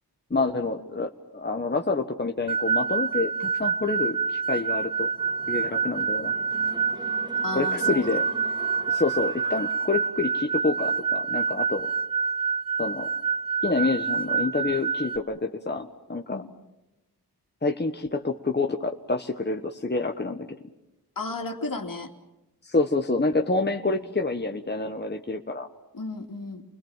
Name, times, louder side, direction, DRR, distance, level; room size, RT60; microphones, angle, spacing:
voice 1, 0.3-5.1 5.5-6.3 7.5-8.2 8.9-11.9 12.8-13.1 13.6-16.4 17.6-20.5 22.6-25.7, left 3 dB, 25° left, 4 dB, 1.4 m, -27 dB
sound 1, 2.5-15.2, right 6 dB, 60° right, 1.3 m, -27 dB
sound 2, 5.1-10.7 11.1-11.2, right 1 dB, 10° right, 3.2 m, -44 dB
voice 2, 7.4-8.1 8.7-9.0 16.3-16.5 21.2-22.1 23.9-24.0 25.9-26.6, left 3 dB, 60° left, 4 dB, 2.9 m, -34 dB
30.0 x 21.0 x 7.4 m, 0.97 s
wide cardioid pair, 65°, 38 cm